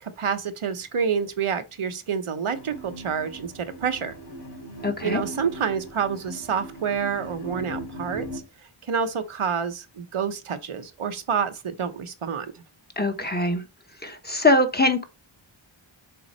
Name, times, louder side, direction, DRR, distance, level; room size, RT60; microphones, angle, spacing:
voice 1, 0.0-4.1 5.0-8.4 8.9-12.6, right 6 dB, 80° right, 0.9 m, -28 dB
sound 1, 2.5-8.4, right 1 dB, 55° left, 3.2 m, -39 dB
voice 2, 4.8-5.2 13.0-13.6 14.0-15.0, left 2 dB, 20° left, 1.1 m, -22 dB
7.0 x 3.8 x 4.3 m
wide cardioid pair, 80°, 49 cm